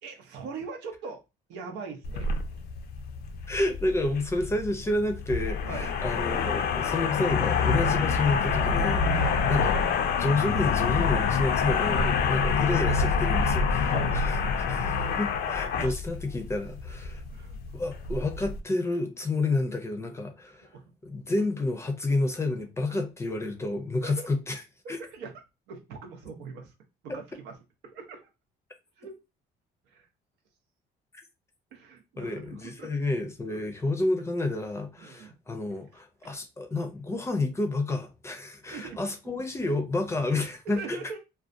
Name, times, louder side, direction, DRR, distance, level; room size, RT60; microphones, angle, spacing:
voice 1, 0.0-1.2 1.5-2.3 5.7-5.9 6.8-6.9 9.1-9.4 13.8-14.2 14.8-15.0 15.5-16.0 17.3-17.6 20.6-20.8 24.0-24.3 24.8-25.4 25.7-26.7 27.0-27.5 27.8-28.3 29.0-29.2 29.9-30.1 31.7-32.9 33.5-33.6 35.0-35.3 35.6-35.7 36.2-36.3 38.7-39.0 40.6-41.2, right 4 dB, 90° right, 0.7 m, -41 dB
sound 1, 2.0-18.6, left 5 dB, 70° left, 0.4 m, -27 dB
voice 2, 3.5-9.2 9.5-9.8 10.2-17.2 17.7-20.7 21.0-24.6 24.9-25.0 32.2-41.0, left 2 dB, 15° left, 0.5 m, -30 dB
2.4 x 2.3 x 2.5 m
cardioid pair, 110°, 17 cm